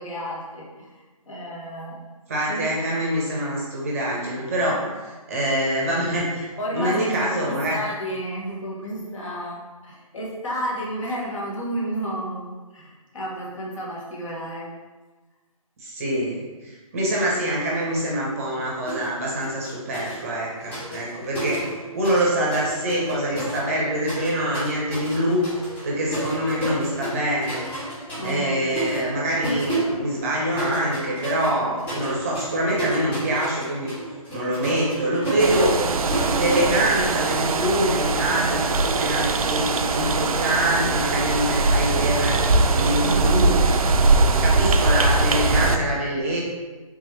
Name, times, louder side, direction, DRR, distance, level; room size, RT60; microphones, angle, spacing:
voice 1, 0.0-2.0 2.5-2.7 4.7-4.8 6.6-12.5 12.7-14.7 21.6-21.7 28.2-28.6 43.0-43.7, equal, 60° left, -4 dB, 1.2 m, -32 dB
voice 2, 2.3-7.8 15.8-25.5 25.8-27.6 27.9-33.9 34.3-36.0 36.4-39.7 39.9-43.6 44.4-46.4, right 1 dB, 25° right, -4 dB, 0.6 m, -25 dB
sound 1, 18.9-19.1 19.4-22.2 22.5-37.5, right 1 dB, 10° left, 1.4 m, -32 dB
sound 2, 35.4-45.8, right 3 dB, 75° right, 0.4 m, -21 dB
3.5 x 3.1 x 3.1 m, 1.3 s
figure-of-eight pair, 155°, 19 cm